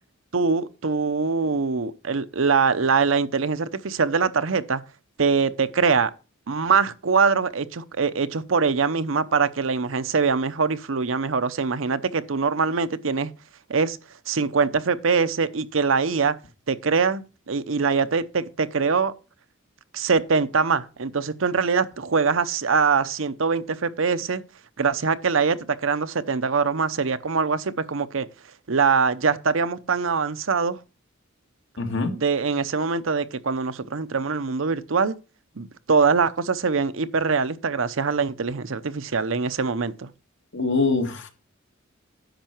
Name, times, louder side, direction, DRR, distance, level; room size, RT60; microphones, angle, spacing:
voice 1, 0.3-4.8 5.2-6.1 6.5-13.3 13.7-14.0 14.3-16.4 16.7-19.1 19.9-24.4 24.8-28.3 28.7-30.8 32.1-35.2 35.6-40.1, right 5 dB, 65° right, 0.7 m, -23 dB
voice 2, 31.8-32.1 40.5-41.3, left 3 dB, 65° left, 1.8 m, -23 dB
10.5 x 6.7 x 4.4 m
head